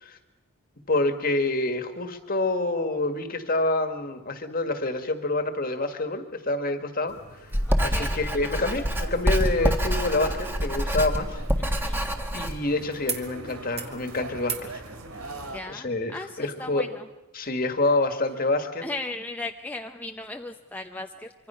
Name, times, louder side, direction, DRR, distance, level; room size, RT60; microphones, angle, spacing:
voice 1, 0.9-7.2 7.8-11.4 12.3-14.7 15.7-16.9 17.3-18.8, left 2 dB, 40° left, 8 dB, 1.8 m, -27 dB
sound 1, 7.1-15.6, right 2 dB, 80° right, 2.9 m, -42 dB
Writing, 7.5-12.5, equal, 10° right, 1.5 m, -26 dB
voice 2, 7.7-8.2 11.6-12.0 15.5-17.1 18.8-21.3, left 2 dB, 10° left, 4 dB, 0.7 m, -37 dB
sound 2, 13.0-13.3 13.6-14.0 14.4-14.7 16.0-16.1, right 6 dB, 30° right, 1.7 m, -38 dB
25.5 x 24.5 x 5.7 m, 1.1 s
head